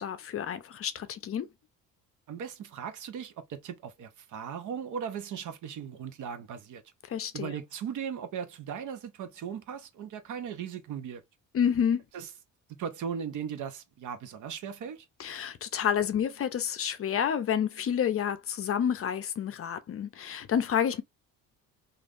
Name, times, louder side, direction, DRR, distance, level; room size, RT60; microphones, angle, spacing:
voice 1, 0.0-1.5 7.1-7.5 11.5-12.0 15.2-21.0, left 8 dB, 40° left, 0.5 m, -29 dB
voice 2, 2.3-6.8 7.3-11.2 12.1-12.3 12.8-15.1, right 7 dB, 60° right, 0.7 m, -38 dB
3.3 x 2.5 x 2.5 m
cardioid pair, 95°, 35 cm